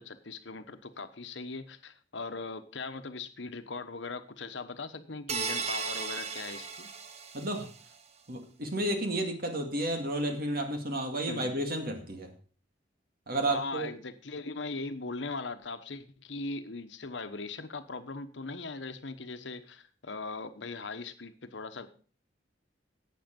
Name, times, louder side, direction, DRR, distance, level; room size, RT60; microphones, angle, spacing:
voice 1, 0.0-6.9 11.2-11.6 13.5-21.9, left 3 dB, 70° left, 10 dB, 1.1 m, -40 dB
sound 1, 5.3-7.8, right 5 dB, 35° right, 1.0 m, -36 dB
voice 2, 7.3-7.7 8.3-12.3 13.3-13.9, right 1 dB, 55° right, 4 dB, 2.2 m, -31 dB
11.5 x 8.5 x 5.3 m, 0.41 s
head